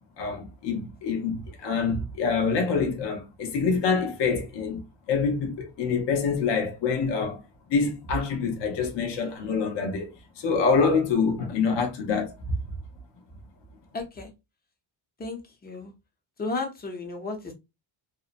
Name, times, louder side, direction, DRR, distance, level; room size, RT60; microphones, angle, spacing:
voice 1, 0.2-4.8 5.1-7.4 7.7-10.1 10.4-12.3, left 5 dB, 60° left, 0.8 m, -26 dB
voice 2, 13.9-14.3 15.2-15.9 16.4-17.5, left 3 dB, 20° left, 0.5 m, -33 dB
2.7 x 2.0 x 2.4 m
cardioid pair, 155°, 48 cm